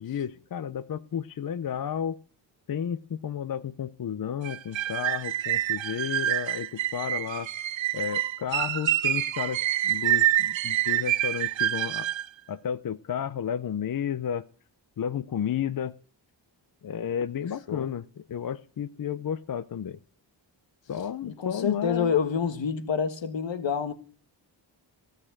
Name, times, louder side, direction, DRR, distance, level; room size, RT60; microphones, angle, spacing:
voice 1, 0.0-2.2 2.7-7.5 7.9-12.1 12.5-14.5 15.0-15.9 16.8-20.0 20.9-22.1, left 8 dB, 50° left, 0.6 m, -32 dB
sound 1, 4.5-12.3, right 13 dB, 80° right, 0.7 m, -27 dB
voice 2, 21.2-23.9, left 7 dB, 75° left, 1.5 m, -27 dB
16.5 x 6.6 x 10.0 m
wide cardioid pair, 175°, 45 cm